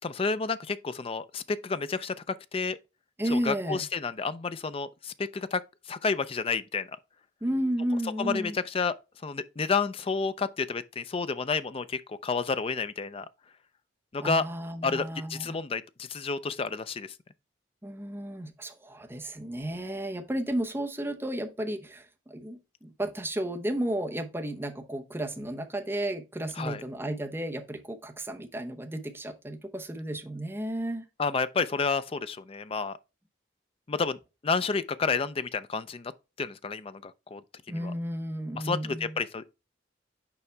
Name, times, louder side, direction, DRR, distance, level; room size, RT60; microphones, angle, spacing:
voice 1, 0.0-2.8 3.3-5.6 5.9-6.9 8.2-8.9 9.2-13.3 14.1-14.5 14.8-17.2 26.6-26.8 31.2-33.0 33.9-36.1 36.4-37.4 37.7-37.9 38.5-39.5, left 4 dB, 30° left, 0.4 m, -30 dB
voice 2, 3.2-3.8 7.4-8.6 14.2-15.6 17.8-31.1 37.7-39.2, right 1 dB, 15° right, 0.9 m, -33 dB
7.0 x 4.9 x 3.3 m
head